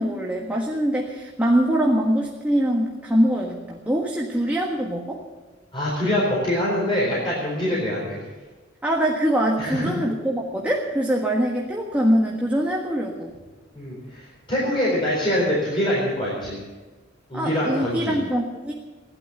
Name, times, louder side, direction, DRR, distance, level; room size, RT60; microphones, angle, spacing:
voice 1, 0.0-5.2 8.8-13.3 17.3-18.7, right 1 dB, 10° right, -2 dB, 1.5 m, -23 dB
voice 2, 5.7-8.2 9.6-9.9 13.7-16.6 17.3-18.2, left 1 dB, 30° left, -5 dB, 4.4 m, -24 dB
16.5 x 11.5 x 6.9 m, 1.3 s
head